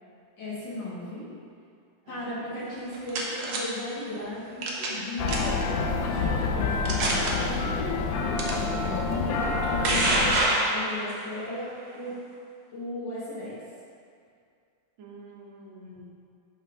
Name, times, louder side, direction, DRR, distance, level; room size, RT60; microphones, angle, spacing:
voice 1, 0.4-1.2 2.1-5.6 6.0-7.8 9.0-12.2 12.7-13.6, left 1 dB, 70° left, -9 dB, 2.5 m, -36 dB
voice 2, 2.0-2.7 15.0-16.1, right 1 dB, 80° right, -3 dB, 1.7 m, -48 dB
sound 1, 2.7-3.6 4.6-5.0 5.3-5.6 6.3-6.4 6.8-7.3 8.4-8.5 9.4-11.2, right 2 dB, 65° right, 1.2 m, -26 dB
sound 2, 5.2-10.4, left 4 dB, 90° left, 1.4 m, -27 dB
5.5 x 5.3 x 3.7 m, 2.4 s
omnidirectional pair, 2.1 m